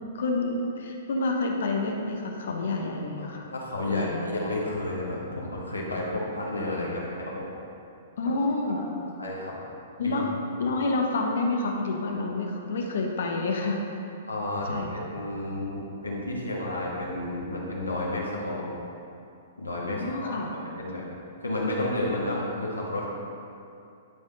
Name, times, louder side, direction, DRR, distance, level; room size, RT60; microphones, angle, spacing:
voice 1, 0.1-3.5 3.9-4.3 8.2-8.8 10.0-10.3 10.6-13.8 14.7-15.1 19.9-20.5, left 3 dB, 65° left, 1 dB, 0.9 m, -28 dB
voice 2, 3.2-7.5 8.2-8.4 8.7-8.9 9.2-9.5 10.0-10.2 10.6-10.8 14.3-18.7 19.6-20.3 20.8-21.0 21.4-23.1, left 1 dB, 90° left, -4 dB, 1.3 m, -31 dB
10.5 x 3.6 x 3.8 m, 2.6 s
figure-of-eight pair, 115°, 0 cm